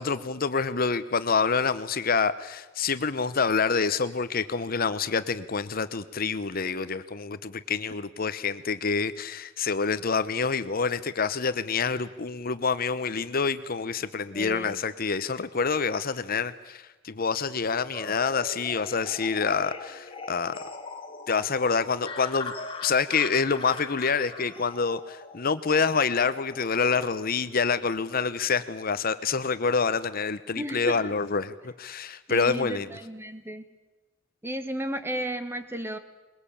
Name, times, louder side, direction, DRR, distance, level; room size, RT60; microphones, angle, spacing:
voice 1, 0.0-20.6 21.3-22.5 22.8-32.9, left 5 dB, 50° left, 13 dB, 0.9 m, -27 dB
voice 2, 14.3-14.8 30.6-31.1 32.3-33.6 34.4-36.0, right 1 dB, 10° right, 10 dB, 1.5 m, -33 dB
sound 1, 17.9-27.0, left 3 dB, 30° left, 2.4 m, -41 dB
22.5 x 21.5 x 8.6 m, 1.1 s
head